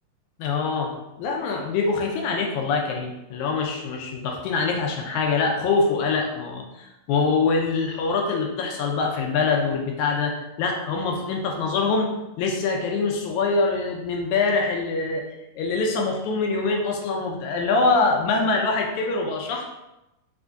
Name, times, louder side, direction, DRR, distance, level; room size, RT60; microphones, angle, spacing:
voice 1, 0.4-15.2 15.6-19.6, left 4 dB, 80° left, 1 dB, 1.9 m, -24 dB
5.0 x 2.6 x 3.4 m, 0.94 s
omnidirectional pair, 3.7 m